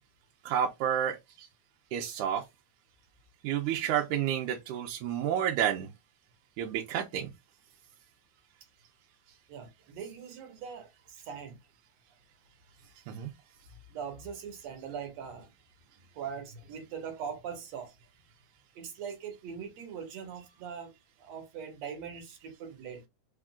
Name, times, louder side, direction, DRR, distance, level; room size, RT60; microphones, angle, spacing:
voice 1, 0.5-1.5 1.9-2.4 3.4-5.9 6.6-7.3 13.1-13.3, right 9 dB, 90° right, 2.2 m, -30 dB
voice 2, 9.5-11.6 13.9-15.5 16.1-17.9 18.8-20.9 21.2-23.0, right 7 dB, 65° right, 2.3 m, -41 dB
5.3 x 3.7 x 2.3 m
omnidirectional pair, 3.5 m